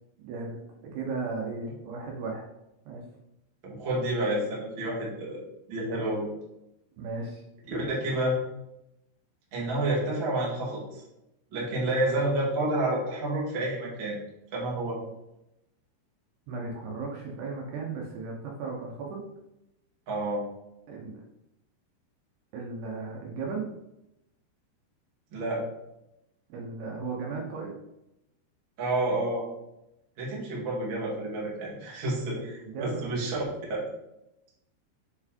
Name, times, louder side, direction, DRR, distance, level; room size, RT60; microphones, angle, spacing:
voice 1, 0.2-0.6 0.9-2.4 2.9-3.0 7.0-7.4 16.5-19.2 20.9-21.1 22.5-23.7 26.5-27.7 32.4-33.2, right 4 dB, 75° right, -1 dB, 2.8 m, -35 dB
voice 2, 3.6-5.4 5.7-6.3 7.7-8.3 9.5-11.0 11.5-14.2 14.5-15.0 20.1-20.4 25.3-25.6 28.8-29.4 30.2-33.4 33.7-33.8, right 1 dB, 50° right, -4 dB, 1.5 m, -29 dB
6.7 x 4.6 x 4.4 m, 0.87 s
omnidirectional pair, 5.4 m